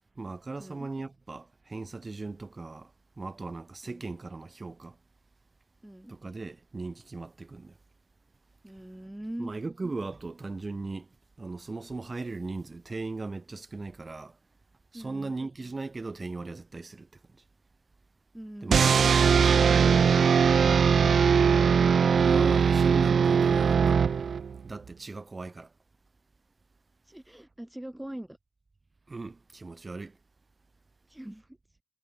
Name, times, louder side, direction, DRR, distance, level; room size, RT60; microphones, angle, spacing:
voice 1, 0.2-2.9 3.2-5.0 6.1-7.7 9.4-11.1 11.4-14.3 14.9-17.1 18.6-19.6 22.1-24.0 24.6-25.7 29.1-30.2, right 3 dB, 40° right, 4.4 m, -38 dB
voice 2, 5.8-6.1 8.6-9.5 14.9-15.3 18.3-19.1 27.1-28.4 31.1-31.6, right 1 dB, 10° right, 5.3 m, -42 dB
sound 1, 18.7-24.6, right 6 dB, 80° right, 0.5 m, -21 dB
cardioid pair, 65°, 0 cm